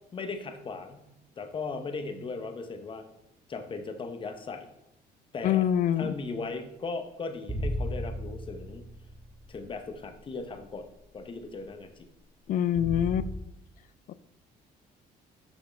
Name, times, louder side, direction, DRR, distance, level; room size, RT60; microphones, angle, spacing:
voice 1, 0.1-1.1 1.4-3.1 3.5-4.7 5.3-5.7 6.0-8.8 9.5-12.1, left 4 dB, 30° left, 6 dB, 0.8 m, -37 dB
voice 2, 5.4-6.2 12.5-13.3 14.1-14.2, left 10 dB, 55° left, 15 dB, 0.4 m, -25 dB
sound 1, 7.5-10.2 10.7-10.8 12.7-13.4, equal, 10° left, 1.8 m, -35 dB
6.0 x 5.9 x 3.4 m, 0.85 s
cardioid pair, 110°, 17 cm